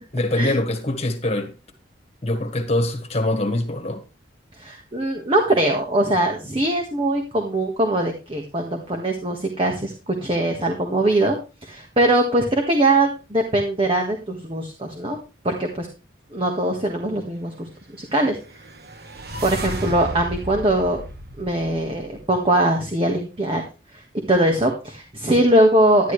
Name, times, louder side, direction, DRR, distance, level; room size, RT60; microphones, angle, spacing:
voice 1, 0.1-1.5 2.2-4.0, left 1 dB, 30° left, 1.7 m, -23 dB
voice 2, 4.6-11.4 11.6-15.2 15.4-15.9 16.3-17.7 18.0-18.4 19.4-21.0 21.4-23.6 24.3-26.1, right 1 dB, 30° right, 1.6 m, -21 dB
sound 1, 18.3-22.5, right 1 dB, 50° right, 1.5 m, -34 dB
11.5 x 11.0 x 3.3 m
head